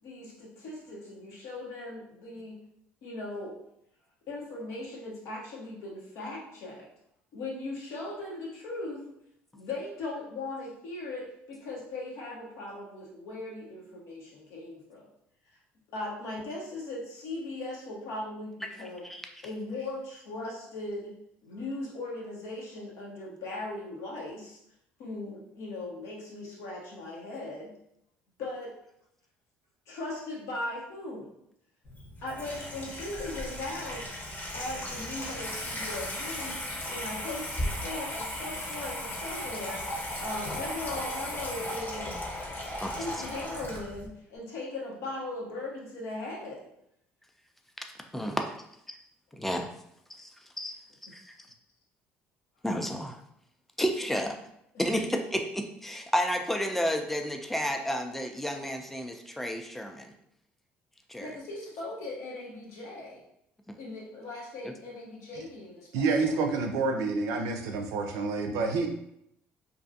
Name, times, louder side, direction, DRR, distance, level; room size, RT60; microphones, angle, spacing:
voice 1, 0.0-2.6 3.0-3.6 4.3-6.9 7.3-9.1 9.5-15.1 15.9-19.1 19.4-21.2 21.4-24.6 25.0-27.7 28.4-28.7 29.9-31.3 32.2-34.1 34.5-36.6 36.9-39.8 40.2-42.2 42.7-46.7 54.7-55.0 61.2-63.2 63.8-66.4 68.5-68.8, left 2 dB, 75° left, -3 dB, 0.8 m, -39 dB
Water tap faucet / Sink (filling or washing), 31.8-44.1, left 1 dB, 40° left, 0.9 m, -36 dB
voice 2, 48.1-48.5 48.9-49.0 49.3-49.7 50.1-50.3 50.6-50.8 51.0-51.3 52.6-53.2 53.8-54.4 54.8-60.1 61.1-61.4, equal, 5° left, 4 dB, 0.4 m, -31 dB
voice 3, 65.9-68.9, right 4 dB, 75° right, 4 dB, 0.4 m, -28 dB
2.6 x 2.3 x 2.6 m, 0.75 s
hypercardioid pair, 65°, 5 cm